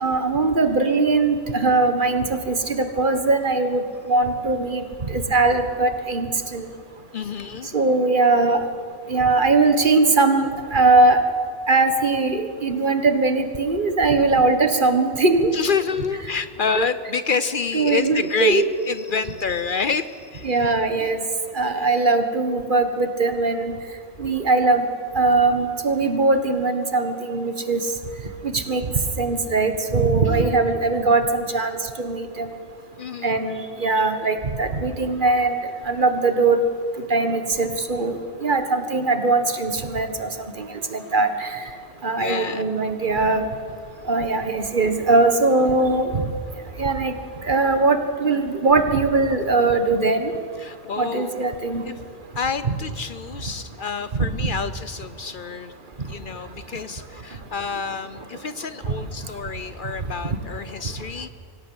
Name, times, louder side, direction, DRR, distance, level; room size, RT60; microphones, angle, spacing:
voice 1, 0.0-4.8 5.1-6.7 7.7-8.7 9.1-11.2 11.7-15.5 16.8-16.9 17.7-18.6 20.4-21.2 21.5-23.7 24.2-24.9 25.1-27.8 28.4-28.8 29.2-31.7 32.0-32.5 33.2-35.6 35.8-36.6 37.1-40.3 40.6-40.7 40.9-41.6 42.0-43.4 44.1-46.2 46.8-47.1 47.5-50.3 51.0-51.8 54.2-54.5, right 3 dB, 50° right, 8 dB, 1.6 m, -20 dB
voice 2, 7.1-7.7 15.5-20.7 21.0-21.1 21.8-21.9 30.2-30.6 33.0-33.4 42.1-42.8 50.6-51.4 51.8-52.0 52.4-55.7 56.1-61.3, left 5 dB, 55° left, 13 dB, 0.8 m, -28 dB
25.0 x 17.0 x 7.9 m, 2.2 s
omnidirectional pair, 1.1 m